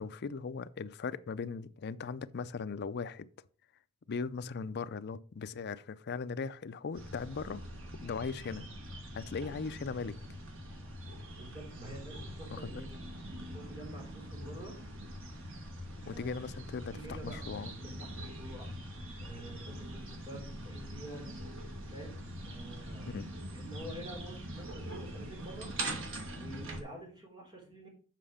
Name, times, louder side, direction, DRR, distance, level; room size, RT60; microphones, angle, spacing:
voice 1, 0.0-3.3 4.1-7.6 8.0-8.7 9.1-10.2 12.5-12.8 16.1-17.7 23.1-23.3, left 5 dB, 50° left, 0.5 m, -38 dB
sound 1, 6.9-26.8, right 1 dB, 65° right, 1.8 m, -43 dB
voice 2, 11.4-12.9 13.4-14.8 16.0-16.4 16.9-18.7 19.2-21.3 21.9-23.2 23.5-25.7 26.4-27.9, right 1 dB, 20° right, 3.5 m, -48 dB
7.5 x 5.6 x 5.0 m
head